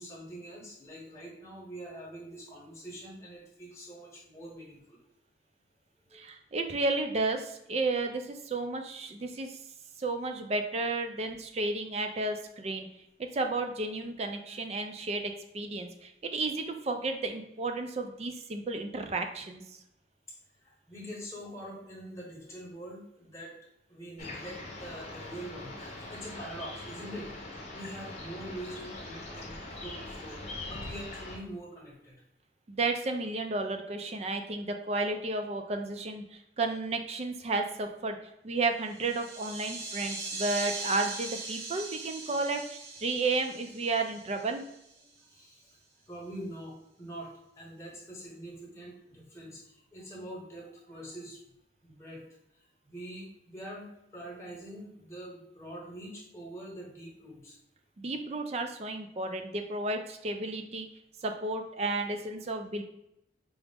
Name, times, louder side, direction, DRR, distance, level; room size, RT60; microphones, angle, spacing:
voice 1, 0.0-5.0 6.1-6.2 20.6-23.5 23.9-27.3 27.7-32.2 45.0-45.7 46.1-51.4 51.8-52.2 52.6-57.6, right 1 dB, 15° left, -4 dB, 1.0 m, -44 dB
voice 2, 6.1-9.6 10.0-12.9 13.3-19.6 32.7-36.2 36.6-38.2 38.4-44.6 58.0-60.9 61.2-62.8, right 3 dB, 35° right, 5 dB, 0.4 m, -32 dB
sound 1, 24.2-31.4, left 2 dB, 35° left, 0.7 m, -42 dB
sound 2, 38.9-45.0, right 3 dB, 80° right, 1.1 m, -40 dB
4.8 x 2.0 x 3.4 m, 0.82 s
head